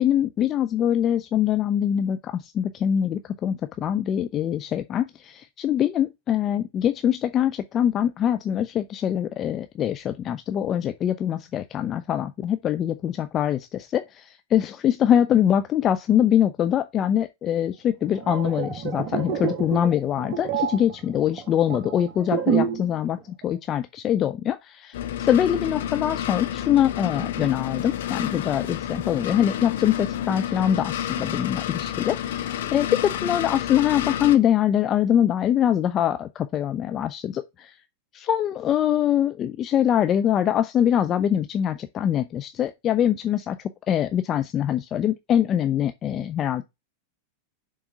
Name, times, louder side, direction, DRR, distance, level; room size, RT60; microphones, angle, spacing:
voice 1, 0.0-23.2 23.4-37.7 38.1-43.6 43.9-46.6, left 10 dB, 30° left, 0.5 m, -23 dB
sound 1, 18.0-22.9 23.2-23.4, right 7 dB, 35° right, 1.2 m, -28 dB
sound 2, 24.9-34.4, left 10 dB, 60° left, 0.8 m, -30 dB
7.0 x 3.7 x 5.4 m
figure-of-eight pair, 90°, 0 cm